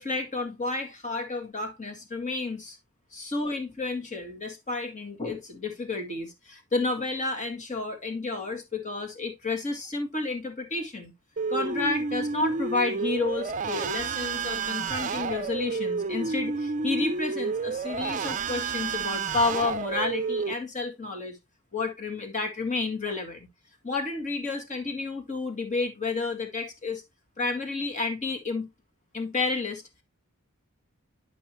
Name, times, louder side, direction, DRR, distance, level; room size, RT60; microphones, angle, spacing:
voice 1, 0.0-2.8 3.1-11.1 11.5-21.4 21.7-23.4 23.8-27.0 27.4-28.7 29.1-29.8, left 3 dB, 35° left, 2.0 m, -31 dB
sound 1, 11.4-20.5, right 4 dB, 35° right, 0.5 m, -30 dB
11.0 x 5.4 x 3.0 m
head